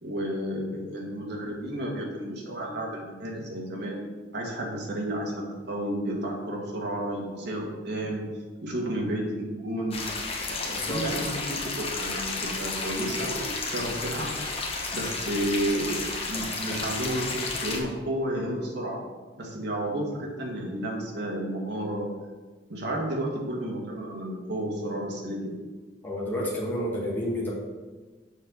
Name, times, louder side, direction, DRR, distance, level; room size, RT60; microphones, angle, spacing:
voice 1, 0.0-4.1 4.3-8.3 8.6-10.0 10.5-14.4 14.9-19.0 19.4-22.1 22.7-25.5, right 1 dB, 65° right, -1 dB, 1.6 m, -32 dB
sound 1, 9.9-17.8, left 3 dB, 30° left, 1.0 m, -32 dB
voice 2, 10.7-11.3 26.0-27.5, equal, 10° left, -5 dB, 1.6 m, -30 dB
6.5 x 3.9 x 6.2 m, 1.3 s
head